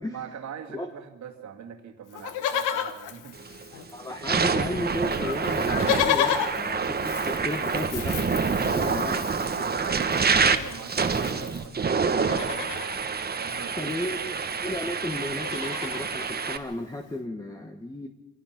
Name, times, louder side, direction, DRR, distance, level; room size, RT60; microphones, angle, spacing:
voice 1, 0.1-3.4 3.9-4.0 8.8-9.1 9.7-12.9 13.3-14.3, right 8 dB, 65° right, 3 dB, 2.3 m, -42 dB
Livestock farm animals working animals, 2.1-4.1 4.4-4.5 4.7-11.7 12.1-13.0 14.2-14.3 14.5-14.8 15.1-16.1 16.7-16.8, left 9 dB, 90° left, 1.3 m, -32 dB
sound 1, 3.4-3.6 4.1-16.6, right 5 dB, 30° right, 1.4 m, -27 dB
voice 2, 3.9-8.2 8.6-9.2 13.8-14.3 14.6-18.1, left 1 dB, 10° left, 4 dB, 1.4 m, -33 dB
24.5 x 17.5 x 5.9 m, 1.1 s
cardioid pair, 90°, 30 cm